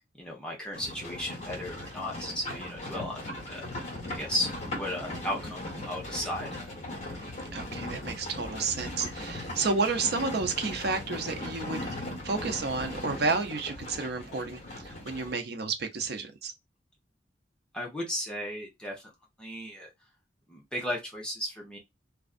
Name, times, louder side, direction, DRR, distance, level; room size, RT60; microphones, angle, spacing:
voice 1, 0.2-3.6 4.1-6.5 17.7-19.1 19.4-19.9 20.5-21.8, left 1 dB, 5° left, 0.8 m, -35 dB
Livestock farm animals working animals, 0.7-15.3, left 1 dB, 40° left, 1.1 m, -38 dB
voice 2, 7.5-11.8 12.2-16.5, right 4 dB, 60° right, 0.5 m, -31 dB
2.5 x 2.3 x 2.3 m
head